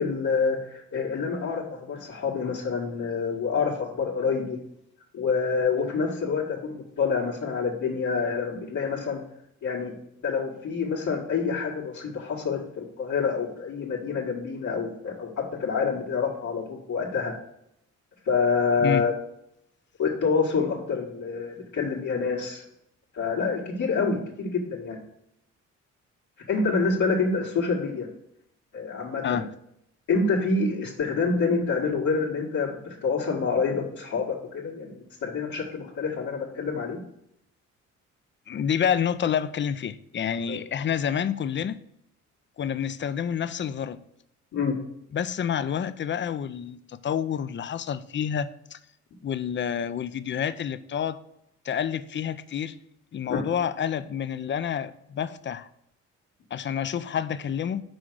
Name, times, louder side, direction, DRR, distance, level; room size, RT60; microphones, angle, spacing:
voice 1, 0.0-4.6 5.1-9.2 9.6-9.9 10.2-17.4 18.3-19.1 20.0-22.6 23.1-25.0 26.5-28.1 28.7-29.4 30.1-37.0 40.5-40.6 44.5-44.8 53.3-53.4, left 5 dB, 70° left, 1.9 m, -27 dB
voice 2, 38.5-41.8 42.6-44.0 45.1-48.8 49.2-51.2 51.6-52.7 53.1-55.7 56.5-57.8, left 8 dB, 40° left, 0.5 m, -28 dB
6.2 x 4.8 x 6.3 m
cardioid pair, 90°, 30 cm